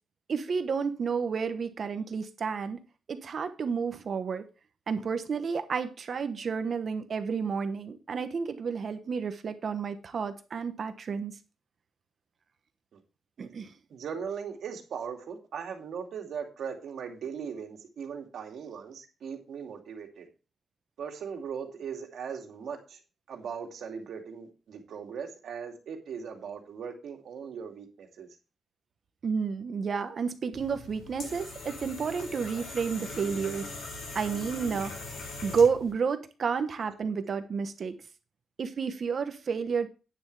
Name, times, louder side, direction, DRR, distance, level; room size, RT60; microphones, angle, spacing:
voice 1, 0.3-2.8 3.1-4.5 4.9-11.3 13.4-13.7 29.2-33.7 34.1-38.0 38.6-39.9, right 6 dB, 45° right, 1.0 m, -31 dB
voice 2, 13.9-20.3 21.0-23.0 23.3-28.3, right 7 dB, 70° right, 2.5 m, -39 dB
sound 1, 30.5-35.9, left 3 dB, 65° left, 6.7 m, -41 dB
10.5 x 9.7 x 3.3 m
wide cardioid pair, 150°, 0 cm